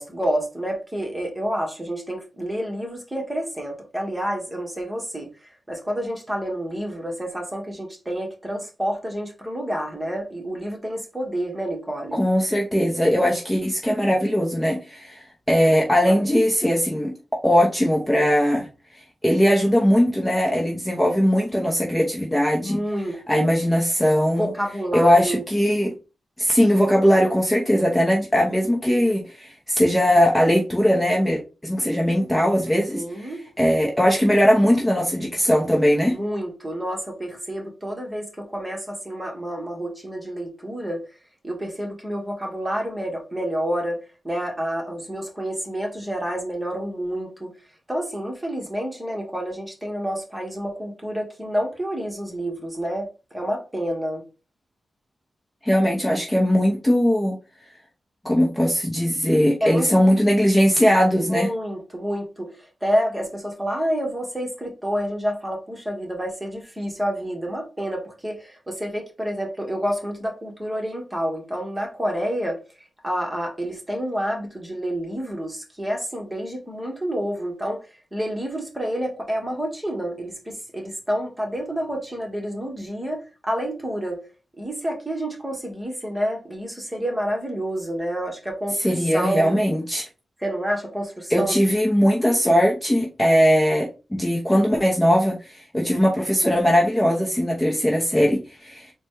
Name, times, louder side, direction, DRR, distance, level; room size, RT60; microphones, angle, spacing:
voice 1, 0.0-5.3 5.7-12.2 16.0-16.3 22.6-23.5 24.4-25.4 32.9-33.4 36.1-41.1 41.4-47.5 47.9-54.2 59.6-59.9 61.2-72.6 73.0-77.8 78.1-84.2 84.6-89.6 90.4-91.6, equal, 15° right, 1.4 m, -29 dB
voice 2, 12.1-17.1 17.4-18.7 18.9-22.8 23.3-24.5 24.9-25.9 26.4-36.2 55.6-57.4 58.2-61.5 88.8-90.1 91.3-98.9, equal, 10° left, 0.8 m, -20 dB
4.1 x 2.3 x 4.6 m
wide cardioid pair, 100°, 0 cm